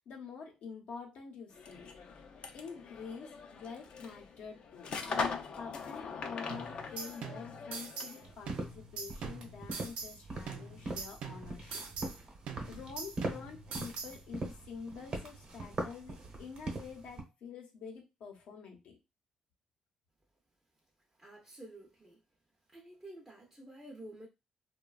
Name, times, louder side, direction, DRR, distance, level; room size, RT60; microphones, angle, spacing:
voice 1, 0.0-1.9 2.5-12.1 12.7-19.0, left 5 dB, 90° left, 0.7 m, -47 dB
sound 1, 1.5-8.3, left 5 dB, 60° left, 0.4 m, -41 dB
sound 2, 6.5-8.2 8.5-10.2 10.5-12.2 12.5-14.2, right 5 dB, 90° right, 0.5 m, -43 dB
sound 3, 8.2-17.2, right 2 dB, 50° right, 0.9 m, -42 dB
voice 2, 21.2-22.2 22.7-24.3, right 1 dB, 15° right, 0.5 m, -50 dB
3.0 x 2.2 x 2.3 m
cardioid pair, 140°, 2 cm